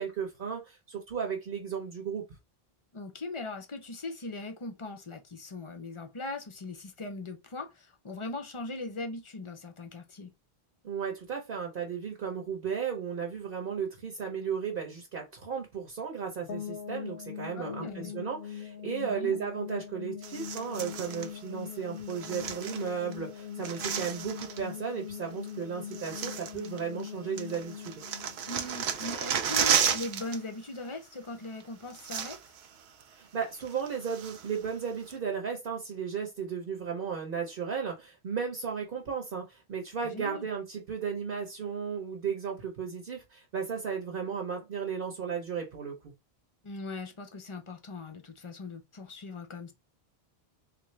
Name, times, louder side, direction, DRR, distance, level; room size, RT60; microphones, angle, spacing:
voice 1, 0.0-2.2 10.8-28.0 33.1-46.1, right 6 dB, 60° right, 1.1 m, -35 dB
voice 2, 2.9-10.3 17.6-18.1 19.0-19.4 28.5-32.4 40.0-40.5 46.6-49.7, left 2 dB, 40° left, 0.5 m, -40 dB
sound 1, 16.5-29.4, left 9 dB, 65° left, 0.8 m, -42 dB
sound 2, 20.2-21.3 22.1-23.1 23.4-24.7 25.5-25.6 25.9-27.1 27.4-30.4 30.6-30.9 31.6-31.7 31.9-32.7 33.0-33.1 33.6-34.6 35.1-35.2, right 8 dB, 80° right, 0.8 m, -33 dB
3.6 x 2.6 x 3.2 m
omnidirectional pair, 1.1 m